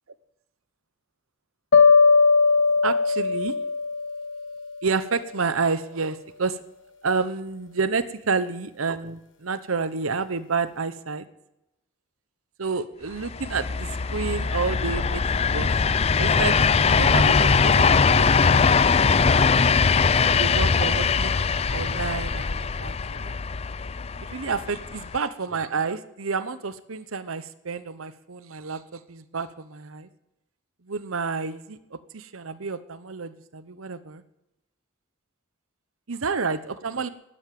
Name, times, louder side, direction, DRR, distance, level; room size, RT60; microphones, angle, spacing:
sound 1, 1.7-4.8, left 4 dB, 60° left, 1.2 m, -19 dB
voice 1, 2.8-3.6 4.8-6.6 7.0-11.3 12.6-15.2 15.5-15.7 16.2-16.6 16.8-19.0 19.3-19.6 20.3-21.4 21.7-23.4 24.3-30.1 30.9-34.2 36.1-37.1, right 4 dB, 85° right, 14 dB, 0.9 m, -29 dB
sound 2, 13.2-25.2, left 5 dB, 30° left, 0.4 m, -21 dB
12.0 x 11.0 x 9.3 m, 0.91 s
head